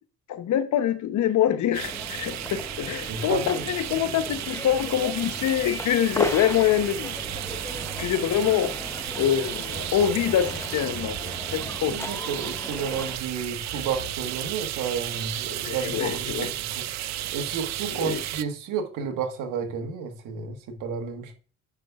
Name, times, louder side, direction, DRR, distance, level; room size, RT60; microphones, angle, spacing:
voice 1, 0.3-7.2 7.5-7.6 8.0-11.2 11.5-12.1 15.6-16.5 17.9-18.2, left 10 dB, 70° left, 0.9 m, -25 dB
sound 1, 1.7-18.4, right 14 dB, 65° right, 0.5 m, -34 dB
sound 2, 1.8-13.2, left 2 dB, 10° left, 0.8 m, -37 dB
voice 2, 3.1-3.6 3.9-4.1 11.9-16.5 16.7-21.3, right 6 dB, 90° right, 1.5 m, -32 dB
sound 3, 7.2-8.7 9.6-12.2 13.6-14.8, right 4 dB, 45° right, 1.5 m, -43 dB
8.9 x 5.9 x 2.4 m
cardioid pair, 90°, 30 cm